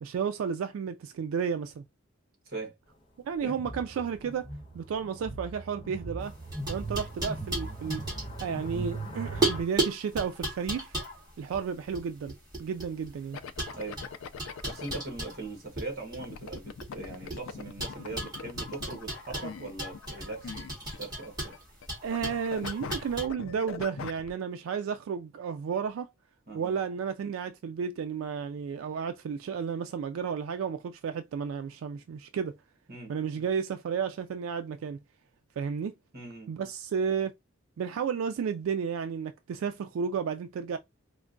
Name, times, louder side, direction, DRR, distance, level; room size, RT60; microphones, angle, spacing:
voice 1, 0.0-1.8 3.2-4.5 4.7-6.3 6.7-8.0 8.4-10.9 11.4-13.4 22.0-26.1 26.5-32.6 33.1-35.0 35.6-35.9 36.5-37.3 37.8-40.8, right 6 dB, 85° right, 0.3 m, -32 dB
sound 1, 3.5-9.6, right 2 dB, 25° left, 1.0 m, -39 dB
sound 2, 6.2-9.0 9.4-13.1 13.6-15.9 16.1-17.4 17.8-23.3, right 2 dB, 20° right, 1.6 m, -35 dB
sound 3, 13.3-15.0 16.2-21.9 22.1-24.3, left 5 dB, 80° left, 0.4 m, -41 dB
voice 2, 14.6-21.6 26.5-26.7 32.9-33.1 36.1-36.5, right 3 dB, 50° right, 1.3 m, -40 dB
4.5 x 2.1 x 2.5 m
head